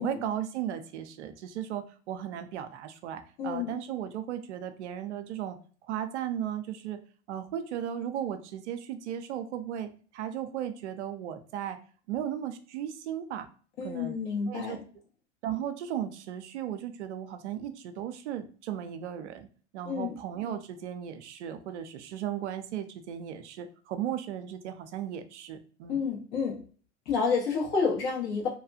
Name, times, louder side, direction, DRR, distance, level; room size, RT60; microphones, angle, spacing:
voice 1, 0.0-7.0 7.3-11.8 12.1-13.5 13.8-14.2 14.5-14.8 15.4-19.5 19.7-26.0, right 10 dB, 70° right, 9 dB, 0.5 m, -36 dB
voice 2, 3.4-3.8 13.8-14.8 19.8-20.2 25.9-26.6 27.0-28.5, left 5 dB, 50° left, -2 dB, 1.4 m, -29 dB
2.8 x 2.3 x 2.6 m, 0.41 s
hypercardioid pair, 90°, 36 cm